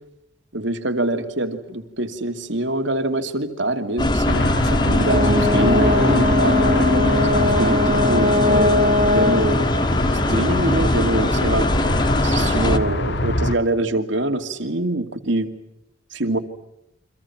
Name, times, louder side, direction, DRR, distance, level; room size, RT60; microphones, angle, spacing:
voice 1, 0.5-6.6 7.3-9.8 10.3-11.7 12.2-15.5 16.1-16.4, right 1 dB, 65° right, 8 dB, 2.5 m, -24 dB
sound 1, 4.0-12.8, left 1 dB, 20° left, 1.4 m, -21 dB
sound 2, 4.2-13.6, left 1 dB, 55° left, 1.5 m, -24 dB
Brass instrument, 5.1-9.5, left 2 dB, 35° right, 2.5 m, -21 dB
30.0 x 25.0 x 6.0 m, 0.84 s
head